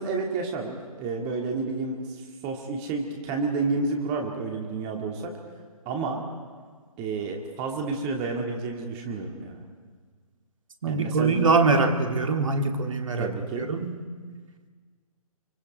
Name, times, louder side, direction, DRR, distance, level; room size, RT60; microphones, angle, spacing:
voice 1, 0.0-5.3 5.9-6.2 7.0-9.6 10.9-11.6 13.2-13.7, right 3 dB, 25° right, 2 dB, 2.2 m, -30 dB
voice 2, 10.8-14.0, right 3 dB, 60° right, 6 dB, 2.3 m, -23 dB
28.0 x 24.5 x 5.3 m, 1.5 s
figure-of-eight pair, 135°, 19 cm